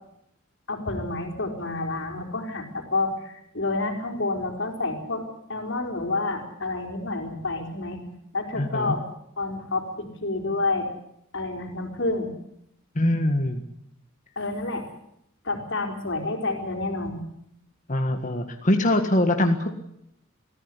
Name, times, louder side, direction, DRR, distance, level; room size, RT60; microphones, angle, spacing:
voice 1, 0.7-5.2 5.5-8.0 8.3-9.0 9.4-10.9 11.3-12.3 14.4-14.9 15.4-17.2, left 2 dB, 60° left, 3 dB, 4.7 m, -29 dB
voice 2, 8.5-9.0 13.0-13.6 17.9-19.7, left 1 dB, 35° left, 5 dB, 1.7 m, -23 dB
22.5 x 15.5 x 10.0 m, 0.76 s
head